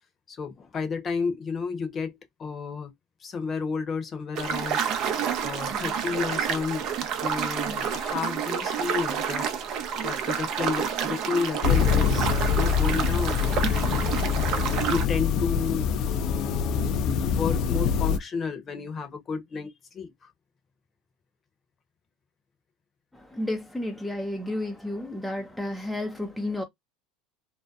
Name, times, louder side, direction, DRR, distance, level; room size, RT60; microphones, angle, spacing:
voice 1, 0.3-2.9 3.2-4.8 5.1-9.5 9.8-13.9 14.7-20.1, left 5 dB, 35° left, 0.8 m, -32 dB
sound 1, 4.4-15.1, right 7 dB, 55° right, 0.6 m, -29 dB
sound 2, 11.6-18.2, left 7 dB, 55° left, 0.4 m, -25 dB
voice 2, 23.1-26.6, left 1 dB, ahead, 0.5 m, -32 dB
2.6 x 2.1 x 2.3 m
supercardioid pair, 105°, 0 cm